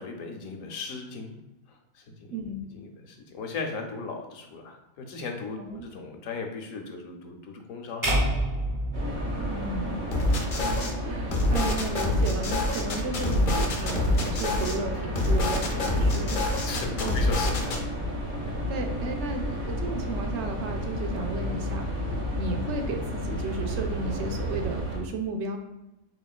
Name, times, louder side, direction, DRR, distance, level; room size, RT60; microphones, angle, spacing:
voice 1, 0.0-1.4 1.7-2.4 2.7-8.3 16.4-18.1 18.4-18.6, left 4 dB, 75° left, 4 dB, 1.0 m, -38 dB
voice 2, 2.3-2.6 5.6-5.9 9.5-10.1 10.6-16.4 17.0-17.2 18.7-21.9 22.4-25.6, right 3 dB, 65° right, 4 dB, 0.8 m, -34 dB
sound 1, 8.0-10.3, right 1 dB, 20° right, 0.6 m, -28 dB
sound 2, 8.9-25.0, equal, 35° right, 1.2 m, -32 dB
sound 3, 10.1-10.9 11.3-14.8 15.1-17.8, left 2 dB, 55° left, 0.6 m, -26 dB
4.3 x 3.3 x 2.3 m, 0.93 s
omnidirectional pair, 1.5 m